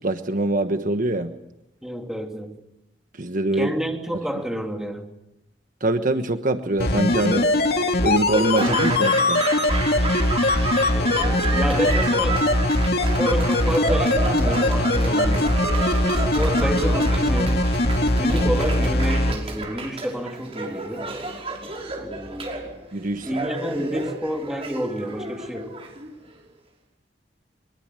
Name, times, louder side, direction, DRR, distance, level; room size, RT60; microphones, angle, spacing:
voice 1, 0.0-1.4 3.2-3.7 5.8-7.5 8.0-9.5 22.9-23.3 23.9-24.0, right 2 dB, 50° right, 1.3 m, -24 dB
voice 2, 1.8-2.6 3.6-5.1 10.9-12.4 13.0-15.6 16.1-17.8 18.2-21.1 22.0-22.7 23.2-25.7, equal, 5° right, 3.0 m, -29 dB
sound 1, 6.8-19.3 19.6-19.7, left 1 dB, 60° left, 2.5 m, -21 dB
Laughter / Applause, 8.3-26.4, right 3 dB, 35° right, 5.5 m, -31 dB
24.0 x 22.5 x 9.0 m
head